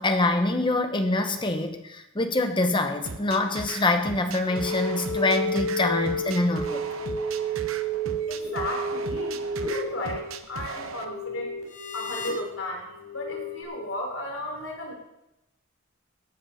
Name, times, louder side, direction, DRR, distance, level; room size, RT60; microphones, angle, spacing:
voice 1, 0.0-6.8, left 2 dB, 25° left, 1.2 m, -25 dB
sound 1, 3.0-11.0, right 4 dB, 85° right, 1.0 m, -38 dB
sound 2, 4.5-13.6, right 1 dB, 40° left, 4.4 m, -31 dB
voice 2, 8.3-11.5 11.9-14.9, left 1 dB, 75° left, 3.9 m, -34 dB
17.0 x 8.0 x 5.8 m
head